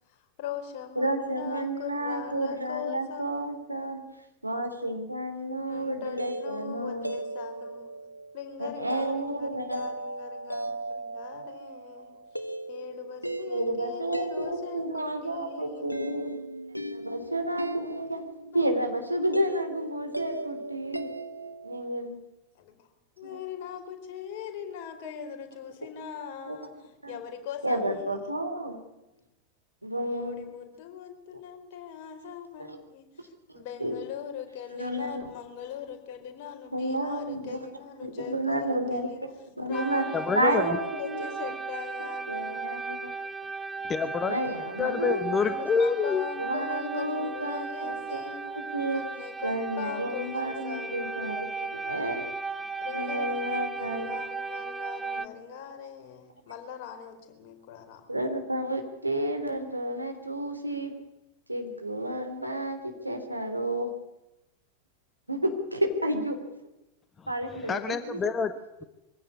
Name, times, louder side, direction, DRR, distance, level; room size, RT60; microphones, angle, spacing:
voice 1, 0.1-3.5 5.7-7.9 8.3-12.2 12.7-15.9 18.1-18.2 18.5-18.7 22.6-22.9 23.2-26.7 27.1-28.1 29.9-39.2 39.6-43.0 45.4-48.4 48.9-51.3 52.8-58.0, left 8 dB, 45° left, 5 dB, 4.5 m, -41 dB
voice 2, 0.9-4.0 4.4-7.1 8.6-9.9 13.5-16.3 16.9-18.2 18.5-21.1 21.6-22.2 23.2-23.4 26.5-26.6 27.0-27.2 27.6-28.8 29.8-30.4 32.6-32.8 33.5-34.0 34.7-35.3 36.7-37.7 38.0-39.3 39.6-40.0 40.3-41.5 42.3-43.1 44.3-45.2 46.4-49.0 49.4-52.2 52.8-54.1 55.1-55.3 58.1-60.9 61.5-63.9 65.3-66.4 67.3-68.3, right 1 dB, 85° right, 5 dB, 3.4 m, -31 dB
sound 1, 5.9-21.8, right 1 dB, 90° left, 1.5 m, -38 dB
sound 2, 39.7-55.3, right 4 dB, 10° right, 1.0 m, -36 dB
voice 3, 40.1-40.8 43.9-44.4 44.8-46.2 67.2-67.3 67.5-68.8, left 5 dB, 20° left, 11 dB, 1.2 m, -27 dB
23.5 x 16.0 x 9.8 m, 0.95 s
figure-of-eight pair, 90°, 0 cm